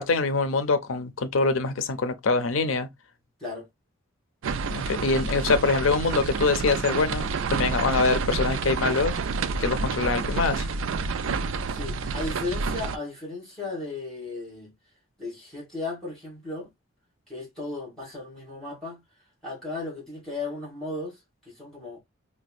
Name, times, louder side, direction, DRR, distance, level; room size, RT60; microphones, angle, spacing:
voice 1, 0.0-2.9 4.7-9.2 9.6-10.7, left 4 dB, 75° left, 0.6 m, -24 dB
sound 1, 4.4-13.0, right 4 dB, 70° right, 0.4 m, -29 dB
voice 2, 11.7-14.7 15.2-16.7 17.3-19.0 19.4-21.2 21.5-22.0, left 3 dB, 5° left, 2.3 m, -35 dB
5.0 x 2.2 x 2.3 m
head